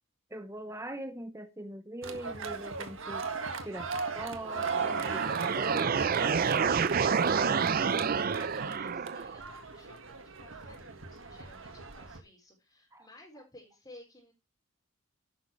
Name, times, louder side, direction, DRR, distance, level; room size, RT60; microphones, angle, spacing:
voice 1, 0.3-3.2 3.6-5.2 5.5-8.0 12.9-13.1, right 1 dB, 15° right, 0.8 m, -42 dB
sound 1, 2.0-12.2, right 5 dB, 65° right, 1.6 m, -37 dB
sound 2, 4.4-9.4, right 6 dB, 45° right, 0.4 m, -29 dB
voice 2, 8.7-14.3, left 1 dB, 20° left, 4.7 m, -55 dB
11.5 x 9.5 x 3.1 m
head